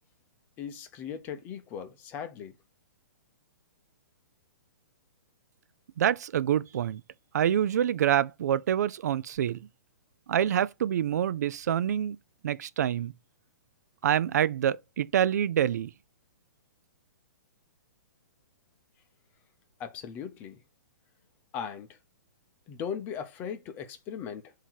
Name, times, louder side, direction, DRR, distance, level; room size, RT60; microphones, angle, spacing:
voice 1, 0.6-2.5 19.8-20.6 21.5-21.9 22.7-24.5, left 7 dB, 20° left, 0.7 m, -38 dB
voice 2, 6.0-7.0 7.3-9.7 10.3-12.2 12.4-13.1 14.0-15.9, right 10 dB, 60° right, 0.4 m, -26 dB
7.5 x 2.8 x 4.6 m
hypercardioid pair, 165°, 10 cm